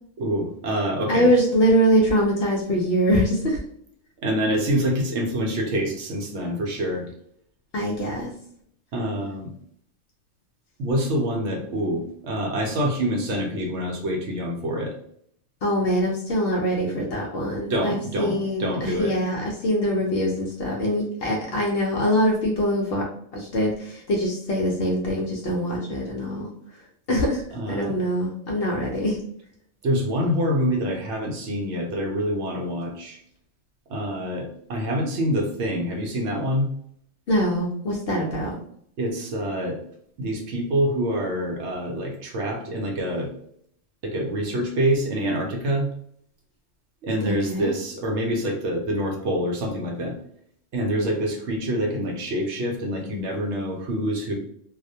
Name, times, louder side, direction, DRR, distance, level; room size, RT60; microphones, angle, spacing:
voice 1, 0.2-1.3 4.2-7.1 8.9-9.5 10.8-14.9 17.7-19.1 27.5-27.9 29.8-33.2 33.9-36.7 39.0-39.8 40.2-43.3 44.0-45.9 47.0-50.1 50.7-54.3, equal, 70° right, 1 dB, 0.8 m, -26 dB
voice 2, 1.1-3.6 7.7-8.3 15.6-23.0 23.3-26.5 27.1-27.4 27.7-29.2 37.3-38.5 47.2-47.7, equal, 65° left, -2 dB, 0.6 m, -23 dB
2.3 x 2.1 x 2.6 m, 0.68 s
omnidirectional pair, 1.4 m